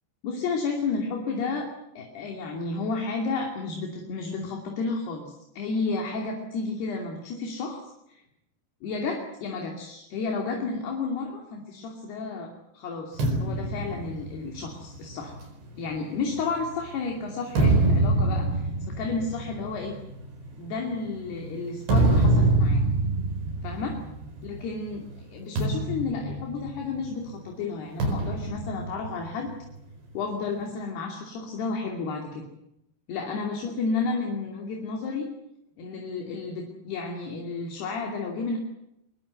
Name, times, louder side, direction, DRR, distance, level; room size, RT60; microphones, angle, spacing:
voice 1, 0.2-1.7 2.0-8.2 8.8-15.3 15.8-20.0 20.5-22.8 23.6-24.0 24.4-29.5 30.1-32.5 33.1-35.3 35.8-38.6, left 4 dB, 70° left, 1 dB, 4.7 m, -32 dB
sound 1, 13.2-16.8 17.3-24.7 25.0-25.2 25.6-27.2 28.0-29.8, right 2 dB, 85° right, 7.1 m, -26 dB
22.5 x 22.0 x 8.0 m, 0.83 s
omnidirectional pair, 5.0 m